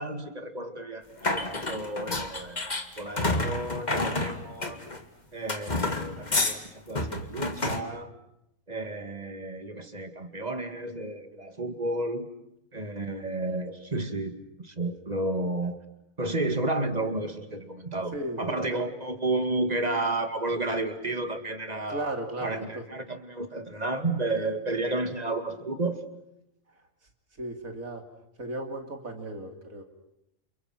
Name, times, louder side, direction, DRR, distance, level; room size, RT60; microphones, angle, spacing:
voice 1, 0.0-4.8 5.3-8.1 8.7-12.3 12.7-15.8 16.2-22.1 22.4-26.0, right 2 dB, 30° right, 7 dB, 2.4 m, -32 dB
sound 1, 1.2-5.0 5.5-6.6 7.0-7.8, left 2 dB, 30° left, 2.1 m, -29 dB
voice 2, 18.1-18.8 21.9-22.8 27.4-28.1 28.4-29.8, right 1 dB, 80° right, 4 dB, 3.6 m, -35 dB
30.0 x 28.5 x 6.1 m, 0.82 s
omnidirectional pair, 1.4 m